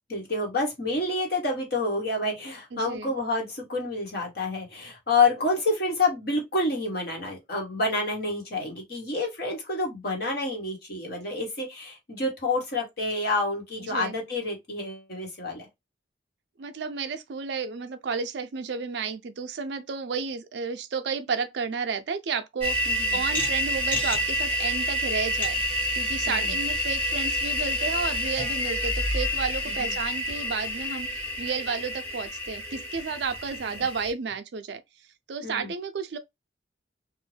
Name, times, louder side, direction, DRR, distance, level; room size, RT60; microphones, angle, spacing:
voice 1, 0.1-15.7 22.9-23.2 26.3-26.5 29.7-29.9 33.7-33.8 35.4-35.7, left 2 dB, 55° left, 1.1 m, -28 dB
voice 2, 2.7-3.1 13.8-14.2 16.6-25.6 25.9-34.8 35.3-36.2, right 5 dB, 65° right, 0.4 m, -32 dB
sound 1, 22.6-34.1, left 1 dB, 10° left, 1.0 m, -28 dB
2.5 x 2.2 x 3.2 m
head